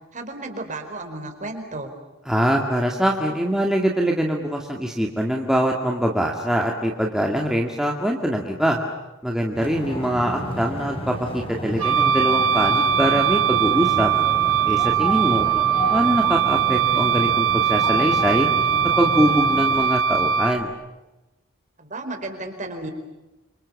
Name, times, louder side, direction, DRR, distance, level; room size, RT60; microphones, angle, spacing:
voice 1, 0.1-1.9 21.8-22.9, right 2 dB, 35° right, 6 dB, 4.6 m, -33 dB
voice 2, 2.3-8.8 9.2-14.1 14.6-15.5 15.9-18.5 19.0-20.7, equal, ahead, 0 dB, 2.2 m, -23 dB
sound 1, 9.5-19.9, left 1 dB, 25° left, 4.1 m, -31 dB
Wind instrument woodwind instrument, 11.8-20.6, right 8 dB, 65° right, 1.3 m, -20 dB
29.5 x 26.0 x 7.3 m, 1.1 s
head